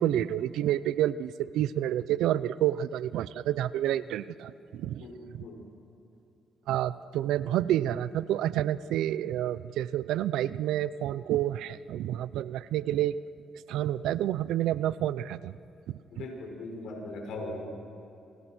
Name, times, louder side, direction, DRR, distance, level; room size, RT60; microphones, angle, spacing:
voice 1, 0.0-5.0 5.3-5.4 6.7-13.2 13.7-15.5 15.9-16.2, right 12 dB, 85° right, 16 dB, 0.6 m, -29 dB
voice 2, 5.0-5.7 16.1-17.6, left 2 dB, 80° left, 2 dB, 6.1 m, -39 dB
28.5 x 28.5 x 6.3 m, 2.8 s
cardioid pair, 90°, 0 cm